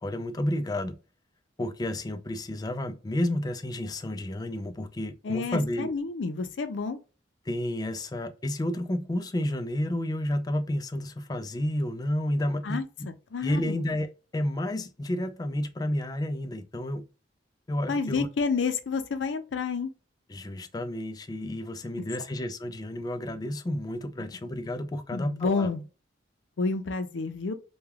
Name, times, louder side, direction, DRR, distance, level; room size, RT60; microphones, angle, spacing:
voice 1, 0.0-0.9 1.6-5.9 7.5-13.1 13.4-14.1 14.3-17.0 17.7-18.3 20.3-25.7, left 1 dB, 20° left, 0.3 m, -31 dB
voice 2, 5.2-7.0 12.6-13.9 17.9-19.9 25.1-25.8 26.6-27.5, left 4 dB, 80° left, 0.5 m, -30 dB
3.2 x 2.2 x 2.2 m
head